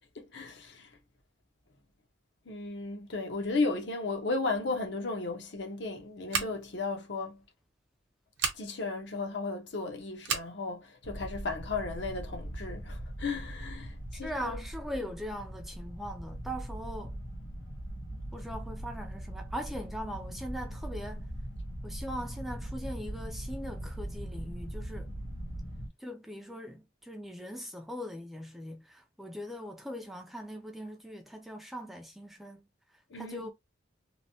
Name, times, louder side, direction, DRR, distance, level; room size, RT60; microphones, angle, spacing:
voice 1, 0.1-0.9 2.5-7.4 8.5-14.6 33.1-33.5, left 3 dB, 60° left, 0.8 m, -35 dB
Scissors, 6.3-6.8 8.3-8.6 10.2-10.5, right 6 dB, 70° right, 0.9 m, -32 dB
sound 1, 11.0-25.9, right 1 dB, 85° left, 0.9 m, -40 dB
voice 2, 14.2-17.2 18.3-21.3 21.8-25.1 26.0-32.6 33.2-33.5, equal, ahead, 0.4 m, -40 dB
3.0 x 2.1 x 2.6 m
head